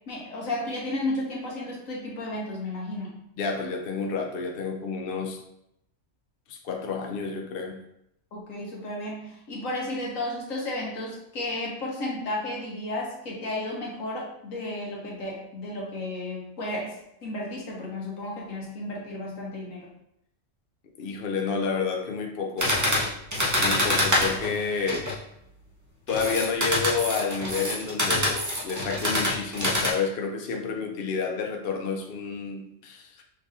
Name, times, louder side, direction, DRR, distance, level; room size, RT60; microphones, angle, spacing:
voice 1, 0.1-3.2 8.3-19.9, left 1 dB, 75° left, 1.6 m, -33 dB
voice 2, 3.4-5.4 6.5-7.8 21.0-22.8 23.6-25.1 26.1-33.2, left 5 dB, 60° left, 0.6 m, -30 dB
sound 1, 22.6-25.2 26.1-29.9, left 1 dB, 15° right, 0.7 m, -25 dB
5.9 x 3.5 x 2.5 m
omnidirectional pair, 1.4 m